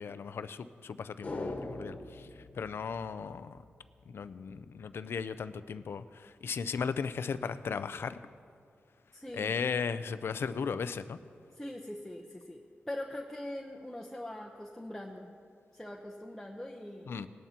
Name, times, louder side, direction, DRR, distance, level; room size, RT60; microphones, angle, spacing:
voice 1, 0.0-2.3 2.6-3.6 4.1-8.2 9.3-11.2 17.1-17.3, left 6 dB, 70° left, 12 dB, 0.4 m, -36 dB
sound 1, 1.2-3.7 4.0-4.1, left 2 dB, 40° left, 1.3 m, -42 dB
voice 2, 9.1-9.5 11.6-12.6 12.9-15.3 15.7-17.1, left 1 dB, 5° left, -2 dB, 0.8 m, -42 dB
19.5 x 11.0 x 2.9 m, 2.4 s
cardioid pair, 80°, 4 cm